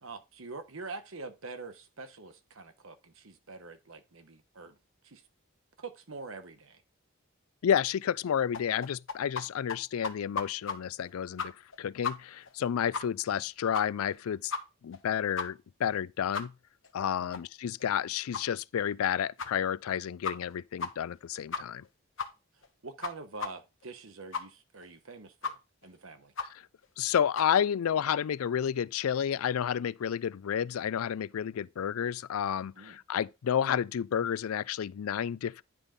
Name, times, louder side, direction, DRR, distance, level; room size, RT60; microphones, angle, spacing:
voice 1, 0.0-4.8 5.0-5.2 5.8-6.8 17.2-17.4 22.8-26.3 32.8-33.0, right 3 dB, 70° right, 1.1 m, -45 dB
voice 2, 7.6-14.5 14.8-16.5 16.9-21.8 26.4-26.6 27.0-35.6, left 8 dB, 85° left, 0.4 m, -31 dB
sound 1, 8.5-9.4 9.7-9.8 10.0-10.8 11.0-11.1 11.4-11.8 12.0-12.1 12.5-12.6 12.9-13.0 13.3-13.4 13.7-14.1 14.5-14.6 14.9-15.0 15.4-15.5 15.9-16.0 16.3-16.4 16.8-16.9 17.3-17.4 17.8-17.9 18.3-18.4 18.9-19.0 19.4-19.5 19.9-20.0 20.2-20.5 20.8-20.9 21.2-21.3 21.5-21.9 22.2-22.3 22.6-22.7 23.0-23.1 23.4-23.5 23.8-23.9 24.3-24.4 24.8-24.9 25.4-25.5 25.8-25.9 26.4-26.5 26.8-26.9 27.3-27.5, left 5 dB, 60° left, 1.1 m, -34 dB
9.9 x 3.7 x 5.2 m
head